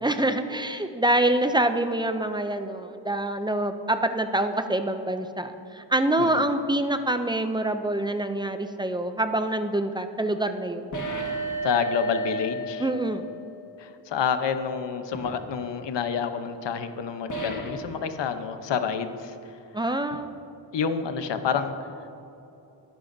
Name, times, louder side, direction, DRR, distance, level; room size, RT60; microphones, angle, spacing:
voice 1, 0.0-10.9 12.8-13.2 19.7-20.3, right 1 dB, 10° right, 8 dB, 0.3 m, -26 dB
voice 2, 6.2-6.5 11.6-12.9 13.8-19.3 20.7-21.7, left 7 dB, 70° left, 9 dB, 0.8 m, -28 dB
sound 1, 10.9-13.5 15.1-15.4 17.3-17.9, right 1 dB, 40° left, 1.3 m, -32 dB
20.0 x 10.5 x 2.6 m, 2.9 s
wide cardioid pair, 170°, 45 cm